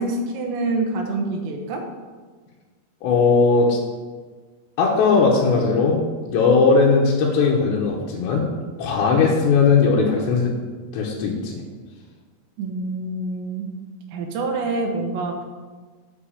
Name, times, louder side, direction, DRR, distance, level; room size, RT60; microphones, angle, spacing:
voice 1, 0.0-1.8 12.6-13.6 14.1-15.4, right 2 dB, 90° right, 1 dB, 3.3 m, -26 dB
voice 2, 3.0-3.8 4.8-8.5 8.8-10.5 10.9-11.6, left 4 dB, 85° left, -3 dB, 3.2 m, -18 dB
9.3 x 5.0 x 7.1 m, 1.4 s
omnidirectional pair, 5.0 m